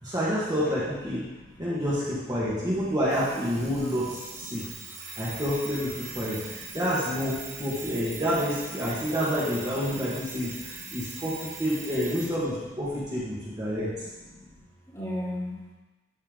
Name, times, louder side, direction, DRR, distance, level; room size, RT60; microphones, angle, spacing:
voice 1, 0.0-1.2 1.6-4.6 5.2-5.9 6.1-13.9, equal, 25° right, -8 dB, 1.6 m, -28 dB
Alarm, 3.1-12.4, right 4 dB, 40° right, 1.4 m, -41 dB
voice 2, 6.2-6.8 7.5-7.7 8.8-9.1 9.7-9.8 10.4-11.2 13.0-14.6 14.9-15.5, left 1 dB, 15° left, -9 dB, 2.8 m, -40 dB
12.5 x 4.4 x 3.7 m, 1.2 s
head